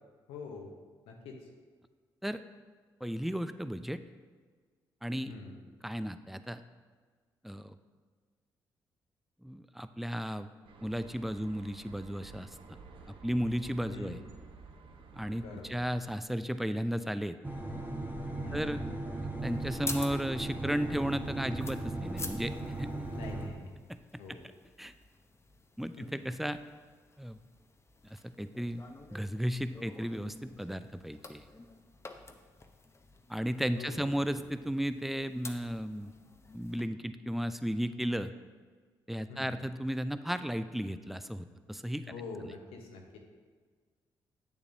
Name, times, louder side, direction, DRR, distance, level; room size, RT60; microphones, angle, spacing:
voice 1, 0.3-0.7 1.1-1.5 5.3-5.6 13.9-14.3 15.4-15.8 18.4-18.8 23.0-23.8 24.2-24.4 26.0-26.1 33.7-34.1 34.4-34.5 39.3-39.7 42.1-43.2, left 3 dB, 85° left, 1 dB, 0.9 m, -45 dB
voice 2, 3.0-4.0 5.0-5.3 5.8-6.6 7.4-7.8 9.4-10.5 10.8-12.8 13.1-14.2 15.1-17.4 18.5-18.8 19.2-22.5 22.8-22.9 23.9-24.0 24.3-24.4 24.8-24.9 25.8-26.6 27.2-27.4 28.1-28.8 29.1-31.5 33.3-36.1 36.5-38.3 39.1-42.1, equal, ahead, 12 dB, 0.4 m, -34 dB
sound 1, 10.7-16.0, right 4 dB, 65° right, 0.7 m, -52 dB
sound 2, 17.4-23.5, right 2 dB, 20° right, 1.1 m, -37 dB
sound 3, 19.4-36.8, left 3 dB, 30° left, 0.7 m, -49 dB
8.2 x 7.0 x 2.6 m, 1.5 s
supercardioid pair, 50°, 10 cm